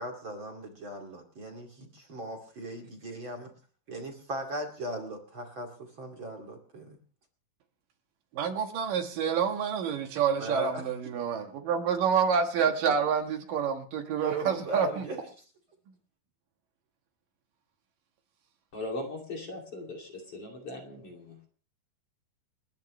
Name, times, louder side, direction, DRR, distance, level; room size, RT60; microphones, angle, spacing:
voice 1, 0.0-3.5 3.9-7.0 10.4-10.8 14.0-15.2, right 1 dB, 35° right, 2.7 m, -38 dB
voice 2, 8.3-15.0, right 7 dB, 70° right, 3.0 m, -28 dB
voice 3, 18.7-21.5, left 2 dB, 40° left, 3.4 m, -39 dB
30.0 x 10.5 x 3.2 m
omnidirectional pair, 4.3 m